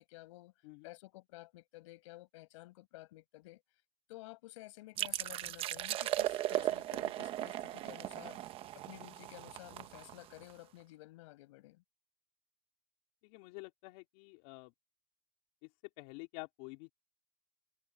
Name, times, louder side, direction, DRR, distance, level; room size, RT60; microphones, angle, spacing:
voice 1, 0.0-0.5 0.8-3.6 4.1-8.4 8.7-11.8, left 19 dB, 75° left, 5.7 m, -53 dB
sound 1, 5.0-10.5, right 14 dB, 35° right, 1.1 m, -37 dB
voice 2, 13.2-14.7 15.6-15.7 16.0-16.9, left 27 dB, 55° left, 3.4 m, -49 dB
supercardioid pair, 150°, 16 cm